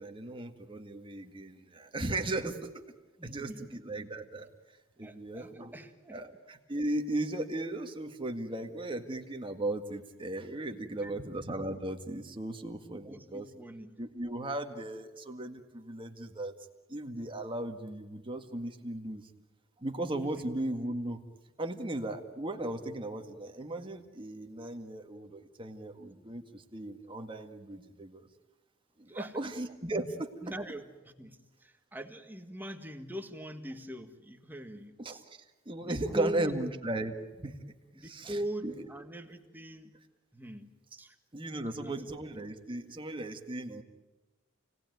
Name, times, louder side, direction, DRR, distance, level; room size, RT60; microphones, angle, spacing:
voice 1, 0.0-2.8 3.2-3.5 3.8-4.5 5.0-5.7 6.1-13.5 14.0-16.5 16.9-19.2 19.8-21.2 21.6-28.2 29.0-30.3 35.0-35.4 35.7-37.6 38.0-38.4 38.6-38.7 41.3-43.8, right 1 dB, 25° right, 4 dB, 1.9 m, -36 dB
voice 2, 3.2-3.8 5.0-6.2 6.8-6.9 10.8-11.3 13.0-14.0 20.2-20.4 29.1-29.5 30.4-35.3 35.8-36.5 37.9-39.9 40.3-41.2 41.8-42.2, equal, 10° right, 5 dB, 1.7 m, -42 dB
29.5 x 18.5 x 9.3 m, 1.2 s
head